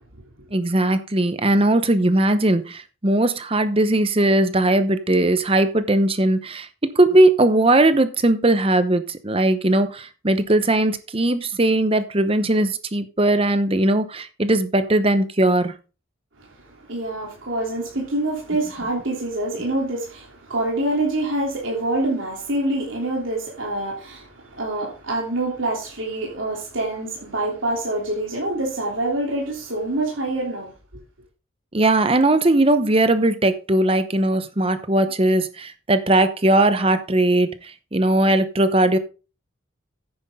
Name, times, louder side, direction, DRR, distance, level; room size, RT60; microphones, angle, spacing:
voice 1, 0.5-15.7 31.7-39.0, right 1 dB, 30° right, 0.9 m, -19 dB
voice 2, 16.4-30.7, right 2 dB, 75° right, 3.2 m, -26 dB
9.7 x 9.7 x 3.7 m
head